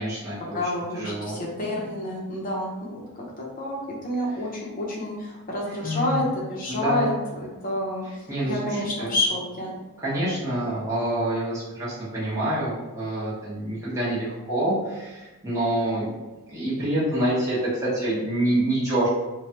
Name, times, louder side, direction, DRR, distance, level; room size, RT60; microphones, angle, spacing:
voice 1, 0.0-1.4 5.6-6.2 6.7-7.1 8.0-9.1 10.0-16.1 16.5-19.1, right 1 dB, 15° right, -10 dB, 0.9 m, -27 dB
voice 2, 0.5-3.0 3.4-3.8 4.0-8.0 8.4-9.8, left 1 dB, 40° left, -3 dB, 0.7 m, -28 dB
3.2 x 2.2 x 2.8 m, 1.1 s
head